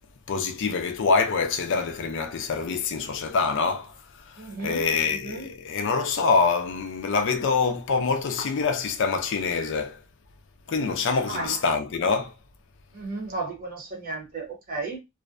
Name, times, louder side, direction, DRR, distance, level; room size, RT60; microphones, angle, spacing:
voice 1, 0.3-3.9 4.6-10.0 10.7-12.3, left 4 dB, 55° left, 0.4 m, -25 dB
voice 2, 4.4-4.9 5.2-5.5 11.3-11.6 12.9-15.0, right 3 dB, 40° right, 0.8 m, -34 dB
2.4 x 2.1 x 2.4 m
head